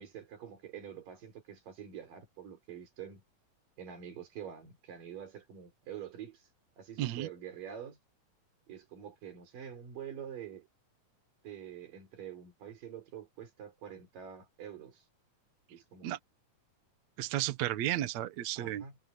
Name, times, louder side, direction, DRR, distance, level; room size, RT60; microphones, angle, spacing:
voice 1, 0.0-3.2 3.8-6.4 6.8-8.0 8.7-10.7 11.4-15.0 15.7-16.1 18.6-19.0, right 9 dB, 80° right, 5.3 m, -46 dB
voice 2, 17.2-18.8, right 13 dB, 65° right, 2.2 m, -33 dB
omnidirectional pair, 3.8 m